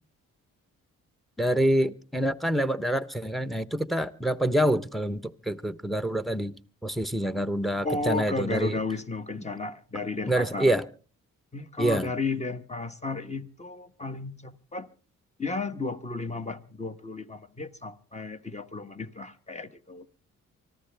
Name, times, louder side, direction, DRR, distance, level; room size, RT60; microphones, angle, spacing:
voice 1, 1.4-6.5 6.8-8.8 10.3-10.8 11.8-12.1, right 1 dB, ahead, 0.9 m, -26 dB
voice 2, 7.8-10.8 11.5-14.9 15.4-20.1, left 3 dB, 20° left, 1.3 m, -33 dB
24.5 x 14.0 x 3.4 m
cardioid pair, 65°, 32 cm